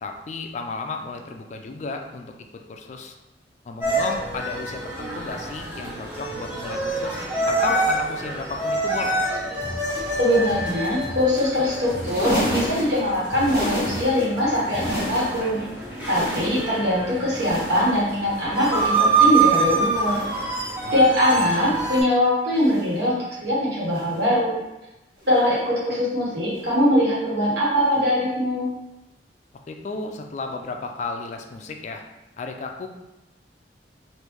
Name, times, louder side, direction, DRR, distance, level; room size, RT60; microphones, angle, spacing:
voice 1, 0.0-2.3 2.7-3.2 3.6-9.2 20.8-21.0 29.7-32.0 32.4-32.9, left 3 dB, 40° left, 4 dB, 0.3 m, -33 dB
sound 1, 3.8-22.0, right 3 dB, 10° right, 0.9 m, -26 dB
sound 2, 9.6-15.2, equal, 25° left, 1.0 m, -37 dB
voice 2, 10.2-15.7 16.1-20.3 20.9-24.6 25.3-28.7, left 1 dB, 70° right, -6 dB, 1.3 m, -22 dB
sound 3, 12.0-14.3 14.6-15.6 15.9-16.9 17.3-18.1 18.6-19.3 19.9-20.6 21.2-21.8 22.5-23.1 23.9-24.3 25.2-25.5 26.5-26.7 27.9-28.0, equal, 55° right, 1.2 m, -32 dB
3.1 x 2.5 x 3.4 m, 0.97 s
head